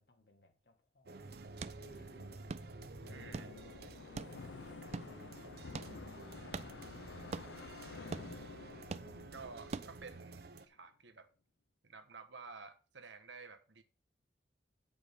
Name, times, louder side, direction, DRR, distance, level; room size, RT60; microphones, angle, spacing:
voice 1, 0.0-7.7, left 2 dB, 60° left, 1.6 m, -71 dB
sound 1, 1.1-10.7, right 3 dB, 60° right, 0.7 m, -52 dB
sound 2, 1.2-10.2, right 4 dB, 35° right, 0.3 m, -48 dB
sound 3, 1.8-10.6, left 4 dB, 85° left, 0.5 m, -52 dB
voice 2, 3.1-3.5 9.3-11.3 11.8-13.8, right 4 dB, 85° right, 1.2 m, -52 dB
9.0 x 5.2 x 5.1 m
head